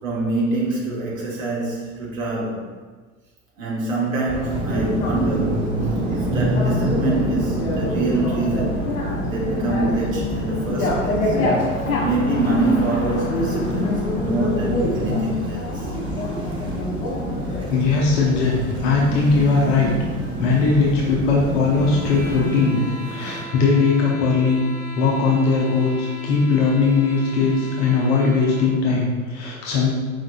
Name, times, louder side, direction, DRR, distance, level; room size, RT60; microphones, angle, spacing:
voice 1, 0.0-2.7 3.6-5.7 6.1-8.8 9.2-11.4 12.0-15.9, right 2 dB, 70° right, -4 dB, 1.3 m, -25 dB
Bicycle, 4.3-22.5, left 1 dB, 70° left, 1.3 m, -26 dB
sound 1, 4.4-23.4, right 2 dB, 15° right, 0.3 m, -30 dB
voice 2, 17.7-19.9 20.4-22.8 23.1-24.6 24.9-30.0, left 4 dB, 45° left, -3 dB, 0.8 m, -19 dB
sound 2, 21.7-28.8, equal, 5° left, 0.9 m, -38 dB
4.8 x 3.7 x 2.3 m, 1.4 s
figure-of-eight pair, 80°, 42 cm